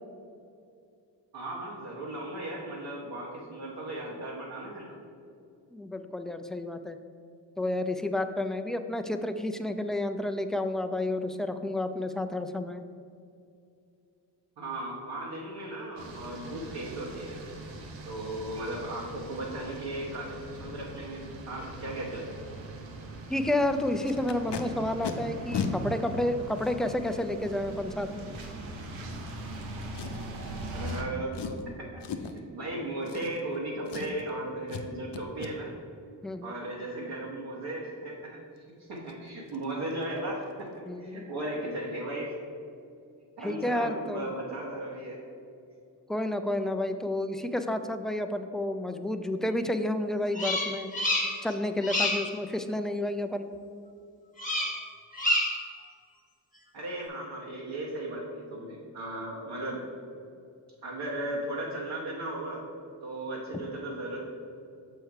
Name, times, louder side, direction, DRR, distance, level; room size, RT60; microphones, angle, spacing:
voice 1, 1.3-4.9 14.6-17.4 18.0-22.3 30.7-35.7 36.4-42.3 43.4-45.2 56.7-59.8 60.8-62.6 63.0-64.2, right 1 dB, 60° right, -5 dB, 1.4 m, -36 dB
voice 2, 5.7-7.0 7.6-12.8 23.3-28.3 36.2-36.6 40.9-41.2 43.4-44.3 46.1-50.9 51.4-53.5, left 1 dB, ahead, 7 dB, 0.4 m, -30 dB
sound 1, 16.0-31.0, right 2 dB, 90° right, 0.9 m, -41 dB
Packing tape duct tape, 24.1-24.6 25.0-25.1 25.5-25.7 26.5-26.6 29.9-30.4 30.8-31.0 31.3-31.6 32.0-32.4 33.0-33.6 33.9-34.3 34.7-34.9 35.1-35.5 38.6-38.7 39.0-39.1 39.5-39.6 39.9-40.2 40.4-40.5, left 7 dB, 65° left, 0.7 m, -36 dB
Bird vocalization bird call bird song, 50.3-51.5 51.8-52.3 54.4-54.8 55.1-55.7, left 1 dB, 15° left, 1.3 m, -28 dB
6.3 x 4.6 x 4.7 m, 2.4 s
supercardioid pair, 45°, 45 cm